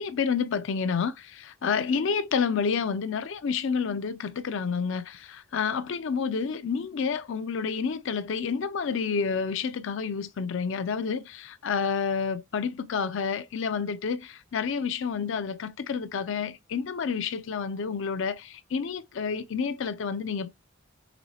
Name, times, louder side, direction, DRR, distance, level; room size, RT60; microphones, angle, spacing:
voice 1, 0.0-20.5, left 6 dB, 60° left, 0.4 m, -29 dB
5.0 x 3.1 x 2.8 m
head